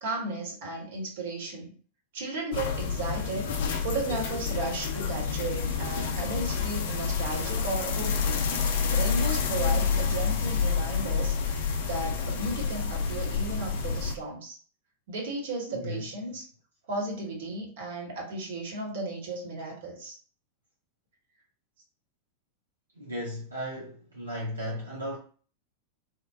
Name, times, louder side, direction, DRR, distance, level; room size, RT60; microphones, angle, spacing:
voice 1, 0.0-1.7 2.1-3.5 3.8-8.4 8.9-14.6 15.1-16.5 16.9-20.2, right 2 dB, 55° right, 1.0 m, -34 dB
sound 1, 2.5-14.2, left 6 dB, 55° left, 0.4 m, -28 dB
voice 2, 15.7-16.1 23.0-25.2, equal, 80° right, 0.5 m, -35 dB
2.9 x 2.1 x 2.3 m
figure-of-eight pair, 90°, 0 cm